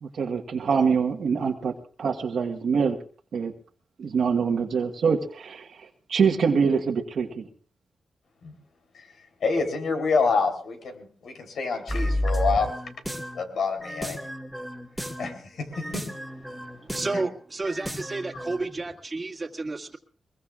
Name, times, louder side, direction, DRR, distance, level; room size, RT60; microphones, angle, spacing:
voice 1, 0.0-1.7 2.0-3.0 3.3-3.5 4.0-7.5, right 6 dB, 70° right, 3 dB, 1.3 m, -25 dB
voice 2, 9.4-12.7 13.3-14.2 15.2-16.0 17.1-17.2, left 4 dB, 80° left, 5 dB, 3.4 m, -27 dB
sound 1, 11.9-13.4 13.8-15.4 15.7-17.3 17.6-18.6, equal, ahead, 2.3 m, -31 dB
voice 3, 16.5-20.0, right 3 dB, 25° right, 0 dB, 1.9 m, -32 dB
22.5 x 22.0 x 2.4 m, 0.43 s
cardioid pair, 90°, 0 cm